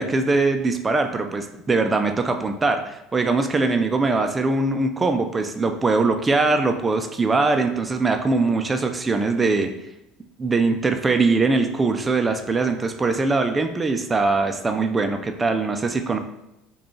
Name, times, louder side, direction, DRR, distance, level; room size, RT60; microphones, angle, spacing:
voice 1, 0.0-9.7 10.4-16.2, right 3 dB, 25° right, 6 dB, 0.4 m, -22 dB
4.9 x 2.3 x 3.1 m, 0.89 s
hypercardioid pair, 80°, 0 cm